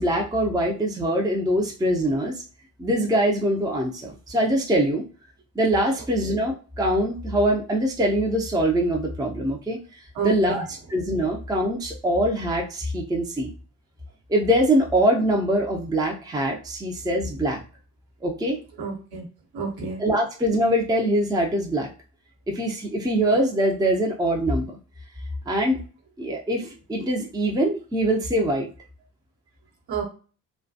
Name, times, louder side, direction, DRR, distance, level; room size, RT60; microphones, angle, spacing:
voice 1, 0.0-2.4 2.8-5.0 5.6-9.8 10.2-10.6 10.9-13.5 14.3-17.6 18.2-18.6 20.0-21.9 22.5-24.8 25.5-25.8 26.2-28.7, right 1 dB, 10° right, 0 dB, 0.6 m, -23 dB
voice 2, 6.0-6.3 10.1-10.7 18.8-19.3 19.5-20.0 29.9-30.0, right 5 dB, 55° right, 0 dB, 1.1 m, -31 dB
2.2 x 2.2 x 2.7 m, 0.37 s
figure-of-eight pair, 40°, 44 cm